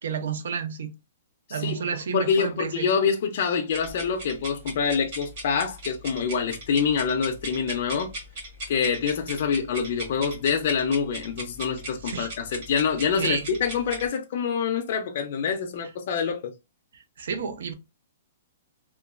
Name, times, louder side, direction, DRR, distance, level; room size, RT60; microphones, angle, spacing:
voice 1, 0.0-0.9 1.5-2.9 12.0-12.3 13.2-13.5 16.9-17.7, right 6 dB, 60° right, 0.5 m, -31 dB
voice 2, 2.1-8.1 8.7-16.5, left 6 dB, 40° left, 0.4 m, -26 dB
sound 1, 3.7-14.1, right 1 dB, 35° right, 1.2 m, -38 dB
3.0 x 2.2 x 2.3 m
hypercardioid pair, 180°, 0 cm